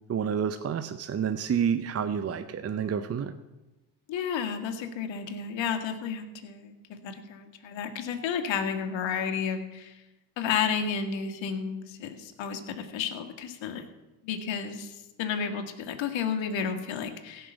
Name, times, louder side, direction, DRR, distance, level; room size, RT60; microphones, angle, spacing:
voice 1, 0.1-3.3, right 7 dB, 30° right, 10 dB, 0.7 m, -29 dB
voice 2, 4.1-10.0 10.4-13.8 14.2-17.5, left 7 dB, 60° left, 6 dB, 1.8 m, -32 dB
16.0 x 5.5 x 7.1 m, 1.1 s
supercardioid pair, 70°, 50 cm